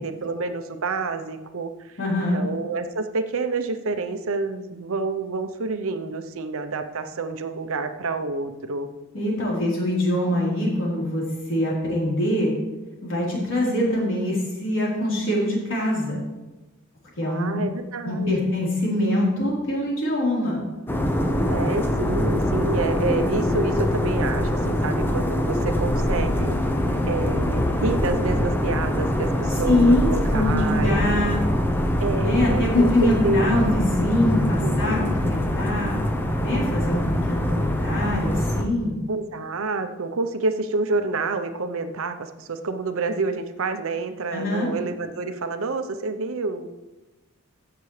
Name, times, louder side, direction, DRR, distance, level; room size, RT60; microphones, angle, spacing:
voice 1, 0.0-8.9 17.2-18.5 21.5-26.5 27.1-31.0 32.0-33.7 34.6-35.1 39.1-46.7, right 3 dB, 65° right, 8 dB, 0.7 m, -28 dB
voice 2, 2.0-2.4 9.1-12.5 13.0-16.2 17.2-17.6 18.0-20.6 29.6-31.4 32.2-36.0 36.4-39.0 44.3-44.7, left 1 dB, 60° left, -5 dB, 3.9 m, -24 dB
sound 1, 20.9-38.6, left 1 dB, 10° left, 0.7 m, -23 dB
15.5 x 6.8 x 3.3 m, 1.1 s
head